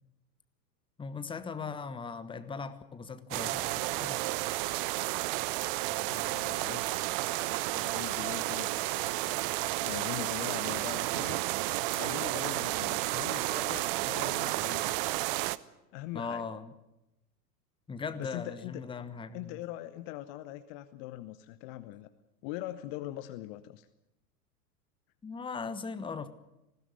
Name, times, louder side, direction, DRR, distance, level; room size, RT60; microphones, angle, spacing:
voice 1, 1.0-4.3 16.1-16.7 17.9-19.6 25.2-26.3, left 5 dB, 10° left, 1.2 m, -39 dB
sound 1, 3.3-15.6, right 19 dB, 35° right, 0.7 m, -32 dB
voice 2, 5.9-7.2 7.7-9.4 9.8-11.4 11.9-15.0 15.9-16.4 18.2-18.8 19.3-22.1 22.4-23.9, left 15 dB, 35° left, 0.9 m, -42 dB
19.5 x 16.0 x 9.5 m
figure-of-eight pair, 90°, 48 cm